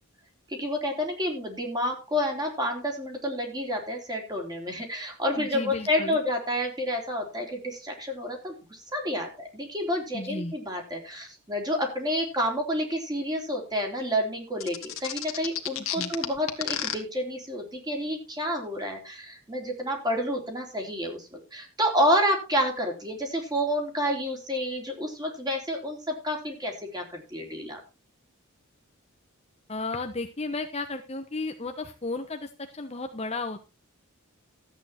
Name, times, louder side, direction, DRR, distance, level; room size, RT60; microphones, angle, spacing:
voice 1, 0.5-27.8, equal, 20° right, 2 dB, 3.6 m, -29 dB
voice 2, 5.4-6.2 10.1-10.5 16.0-16.1 29.7-33.6, left 3 dB, 30° left, 6 dB, 1.1 m, -34 dB
sound 1, 14.6-16.9, left 10 dB, 60° left, 2.0 m, -31 dB
13.5 x 8.9 x 4.3 m, 0.29 s
head